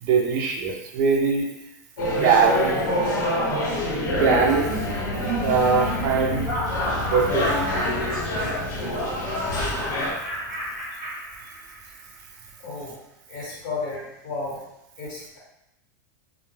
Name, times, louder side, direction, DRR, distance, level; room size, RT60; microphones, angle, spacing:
voice 1, 0.0-1.5 2.1-2.7 4.1-5.0 5.4-6.5 6.9-7.6, right 5 dB, 40° right, 0 dB, 0.5 m, -22 dB
sound 1, 2.0-10.1, left 1 dB, 80° left, 0.9 m, -27 dB
sound 2, 4.0-10.8, left 2 dB, 25° left, 0.6 m, -34 dB
Laughter, 4.4-11.9, right 1 dB, 20° right, 0.9 m, -32 dB
voice 2, 12.6-13.0 13.3-14.6 15.0-15.4, left 3 dB, 45° left, -5 dB, 1.1 m, -33 dB
2.2 x 2.1 x 3.1 m, 0.86 s
supercardioid pair, 150°, 10 cm